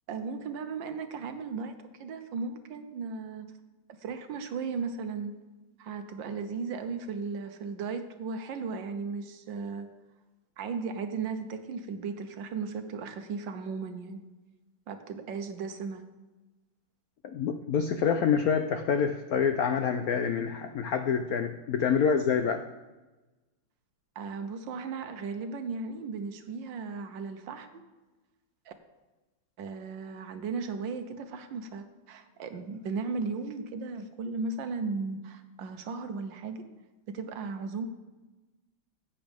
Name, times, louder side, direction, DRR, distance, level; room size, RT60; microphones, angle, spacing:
voice 1, 0.1-1.7 2.0-3.5 4.0-5.3 5.8-9.9 10.6-14.2 14.9-16.1 24.1-27.8 28.7-28.8 29.6-36.6 37.1-37.9, right 4 dB, 70° right, 8 dB, 1.5 m, -36 dB
voice 2, 17.2-22.6, left 6 dB, 80° left, 7 dB, 0.8 m, -27 dB
15.5 x 8.4 x 3.5 m, 1.1 s
omnidirectional pair, 2.2 m